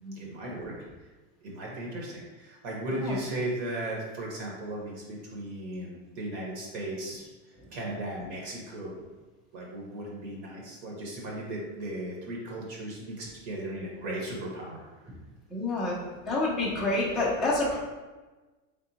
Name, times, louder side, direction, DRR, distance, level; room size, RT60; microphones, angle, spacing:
voice 1, 0.1-0.7 1.4-7.3 7.7-8.9 9.5-15.0, right 1 dB, 55° right, -2 dB, 1.1 m, -36 dB
voice 2, 15.5-16.0 16.3-17.8, left 2 dB, ahead, -7 dB, 0.4 m, -28 dB
3.7 x 3.5 x 2.8 m, 1.2 s
supercardioid pair, 140°, 40 cm